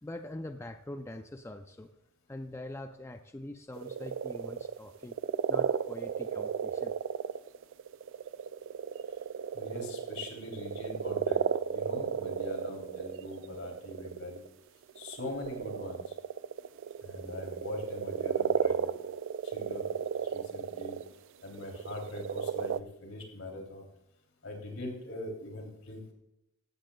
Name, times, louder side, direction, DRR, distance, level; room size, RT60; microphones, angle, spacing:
voice 1, 0.0-1.9 2.3-5.2 5.5-6.9, left 1 dB, 15° left, 7 dB, 0.4 m, -43 dB
sound 1, 3.8-14.5 14.9-21.1 21.5-22.8, right 7 dB, 60° right, 0.3 m, -34 dB
voice 2, 9.5-14.5 14.9-16.1 17.0-18.9 19.4-20.0 20.2-21.0 21.4-23.9 24.4-26.1, left 1 dB, 75° left, 3 dB, 3.1 m, -42 dB
15.5 x 14.0 x 2.3 m, 0.84 s
head